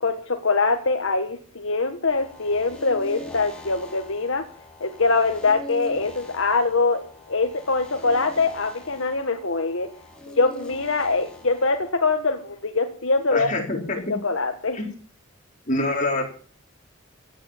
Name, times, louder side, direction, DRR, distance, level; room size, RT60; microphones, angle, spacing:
voice 1, 0.0-4.4 4.8-7.0 7.3-9.9 10.3-13.5 14.2-14.8, left 3 dB, 70° left, 5 dB, 1.6 m, -23 dB
sound 1, 2.1-11.9, left 1 dB, 5° left, 4.0 m, -42 dB
voice 2, 13.3-14.2 14.7-14.9 15.7-16.2, left 2 dB, 35° left, 1 dB, 4.3 m, -25 dB
16.0 x 9.1 x 7.4 m, 0.42 s
head